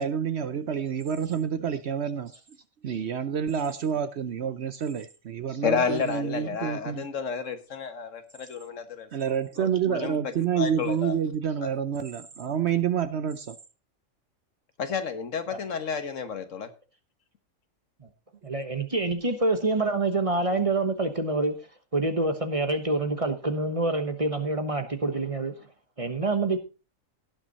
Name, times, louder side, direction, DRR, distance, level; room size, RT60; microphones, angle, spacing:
voice 1, 0.0-2.3 2.8-7.0 9.1-13.6, right 8 dB, 60° right, 12 dB, 0.9 m, -28 dB
voice 2, 5.6-10.2 10.5-11.1 11.6-11.7 14.8-16.7, left 6 dB, 65° left, 9 dB, 1.5 m, -31 dB
voice 3, 18.4-21.5 21.9-25.5 26.0-26.6, right 2 dB, 25° right, 7 dB, 1.1 m, -26 dB
17.5 x 6.1 x 4.0 m, 0.32 s
omnidirectional pair, 1.4 m